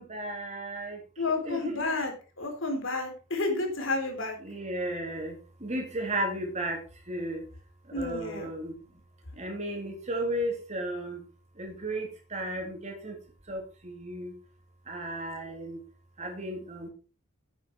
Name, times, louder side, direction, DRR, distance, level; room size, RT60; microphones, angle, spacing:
voice 1, 0.0-1.0 1.4-1.9 4.4-5.3 5.6-6.8 7.1-7.4 7.9-8.7 9.4-11.2 11.6-13.1 13.5-14.3 14.9-15.8 16.2-16.9, right 1 dB, 35° right, 2 dB, 3.4 m, -34 dB
voice 2, 1.2-2.1 2.4-4.4 7.9-8.5, left 3 dB, 75° left, 4 dB, 3.8 m, -30 dB
10.0 x 9.1 x 4.7 m, 0.35 s
head